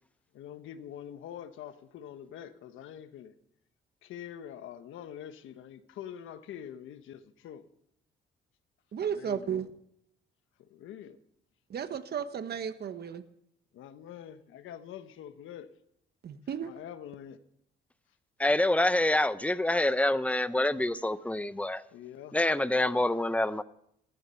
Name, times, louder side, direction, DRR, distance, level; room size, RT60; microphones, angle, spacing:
voice 1, 0.3-3.3 4.0-7.6 9.1-9.6 10.6-11.2 13.7-15.7 16.6-17.4 21.9-22.4, left 10 dB, 85° left, 1.2 m, -45 dB
voice 2, 8.9-9.7 11.7-13.2 16.2-16.7, right 8 dB, 55° right, 1.3 m, -34 dB
voice 3, 18.4-21.8 22.3-23.6, left 1 dB, 5° left, 0.8 m, -26 dB
16.0 x 14.0 x 5.7 m
cardioid pair, 90°, 20 cm